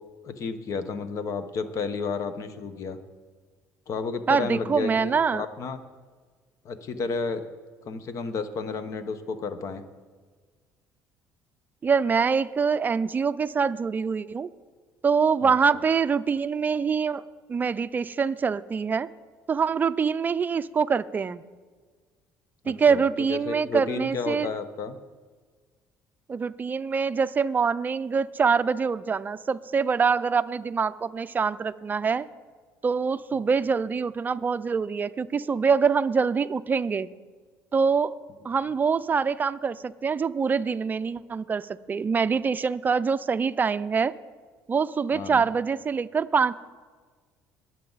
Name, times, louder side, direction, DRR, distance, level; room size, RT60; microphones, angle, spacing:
voice 1, 0.2-3.0 3.9-5.8 6.6-7.4 7.8-9.8 15.4-15.5 22.6-25.0 45.1-45.5, left 4 dB, 55° left, 10 dB, 1.1 m, -32 dB
voice 2, 4.3-5.5 11.8-14.5 15.0-19.1 19.5-21.4 22.7-24.5 26.3-32.3 32.8-37.1 37.7-38.2 38.4-44.1 44.7-46.5, right 5 dB, 30° right, 14 dB, 0.5 m, -25 dB
21.5 x 7.5 x 4.1 m, 1.5 s
cardioid pair, 95°, 7 cm